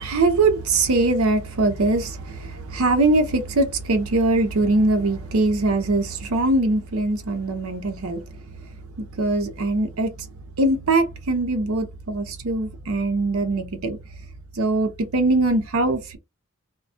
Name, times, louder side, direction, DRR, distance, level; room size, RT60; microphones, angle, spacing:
voice 1, 0.0-8.2 9.2-10.1 10.6-14.0 14.6-16.2, right 2 dB, 75° right, 0.6 m, -22 dB
2.2 x 2.1 x 2.6 m
head